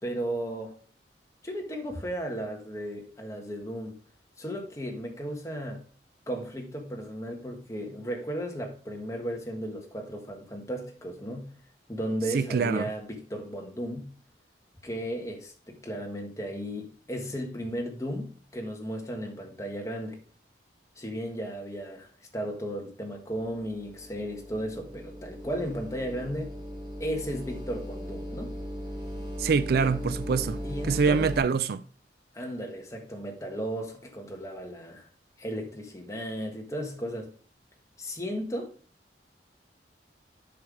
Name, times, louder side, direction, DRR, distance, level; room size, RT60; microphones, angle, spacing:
voice 1, 0.0-0.8 1.4-4.0 4.4-5.8 6.3-11.5 11.9-14.1 14.8-20.2 21.0-26.5 27.0-28.5 30.6-31.3 32.3-35.1 35.4-37.3 38.0-38.7, equal, 15° left, 1.5 m, -35 dB
voice 2, 12.3-12.9 29.4-30.6 30.9-31.8, right 5 dB, 60° right, 0.4 m, -25 dB
sound 1, 23.3-31.4, equal, 25° right, 2.8 m, -38 dB
7.6 x 5.6 x 4.8 m
head